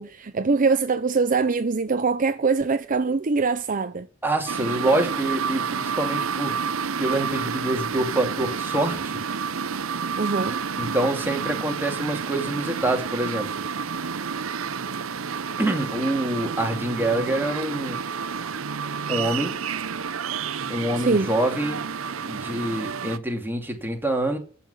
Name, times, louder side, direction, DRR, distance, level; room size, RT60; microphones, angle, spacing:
voice 1, 0.0-4.1 10.2-10.6 21.0-21.3, right 4 dB, 40° right, 0.6 m, -23 dB
voice 2, 4.2-6.6 7.0-9.2 10.8-13.5 15.6-18.0 19.1-19.5 20.7-21.8 22.2-24.4, right 1 dB, 10° right, 2.4 m, -26 dB
sound 1, 4.5-23.2, right 6 dB, 70° right, 0.8 m, -30 dB
14.0 x 5.8 x 8.0 m
head